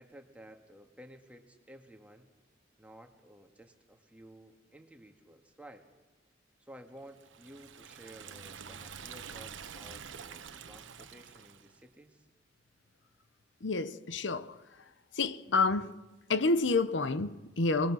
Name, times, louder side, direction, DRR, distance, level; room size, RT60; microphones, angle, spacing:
voice 1, 0.0-2.3 2.8-5.9 6.6-12.3, right 1 dB, 5° right, 1.8 m, -54 dB
Liquid, 7.1-11.8, right 7 dB, 90° right, 1.0 m, -47 dB
voice 2, 13.6-14.6 15.1-16.0 16.3-17.9, left 3 dB, 80° left, 0.9 m, -29 dB
26.0 x 21.0 x 6.3 m
head